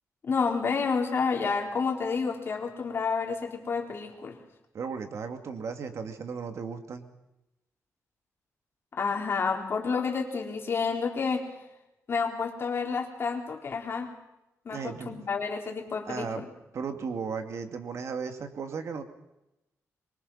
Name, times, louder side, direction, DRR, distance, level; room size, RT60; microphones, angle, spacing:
voice 1, 0.2-4.4 8.9-11.5 12.1-14.1 14.7-16.5, left 5 dB, 45° left, 2 dB, 3.9 m, -29 dB
voice 2, 4.7-7.1 14.7-15.2 16.1-16.4 16.7-19.0, right 5 dB, 60° right, 6 dB, 2.3 m, -35 dB
25.0 x 23.5 x 5.7 m, 0.92 s
wide cardioid pair, 135°, 6 cm